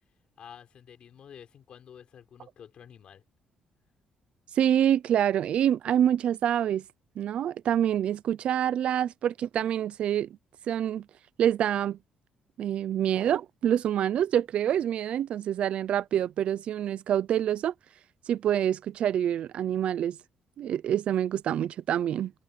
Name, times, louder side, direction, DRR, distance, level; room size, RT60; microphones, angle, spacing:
voice 1, 0.4-3.2, left 8 dB, 50° left, 5.3 m, -50 dB
voice 2, 4.6-6.8 7.2-10.3 10.7-11.0 11.4-12.0 12.6-17.7 18.3-20.2 20.6-22.3, right 10 dB, 60° right, 0.6 m, -26 dB
open air
cardioid pair, 130°, 2 cm